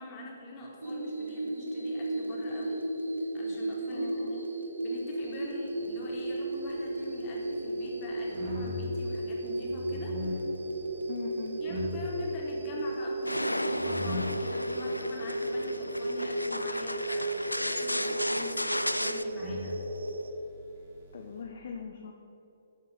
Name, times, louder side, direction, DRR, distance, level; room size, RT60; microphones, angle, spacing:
voice 1, 0.0-2.8 3.3-4.5 4.8-10.2 11.6-19.8, left 2 dB, 30° left, -2 dB, 3.6 m, -44 dB
sound 1, 0.8-20.3, right 1 dB, 80° right, 1.4 m, -34 dB
voice 2, 3.9-4.4 11.1-11.6 21.1-22.1, left 5 dB, 50° left, 3 dB, 1.1 m, -41 dB
sound 2, 6.0-21.4, left 3 dB, 35° right, 3.1 m, -43 dB
sound 3, 13.2-19.2, left 1 dB, 90° left, 0.6 m, -34 dB
12.5 x 9.6 x 6.8 m, 3.0 s
figure-of-eight pair, 130°, 0 cm